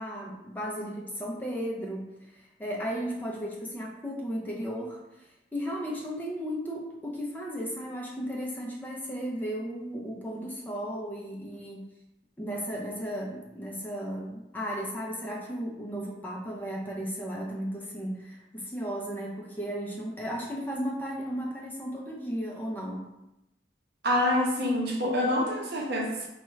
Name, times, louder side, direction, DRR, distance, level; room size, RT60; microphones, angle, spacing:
voice 1, 0.0-11.8 12.4-23.1, equal, 10° left, -2 dB, 0.5 m, -35 dB
voice 2, 24.0-26.3, left 1 dB, 60° right, -1 dB, 0.7 m, -26 dB
4.2 x 2.3 x 3.1 m, 0.92 s
head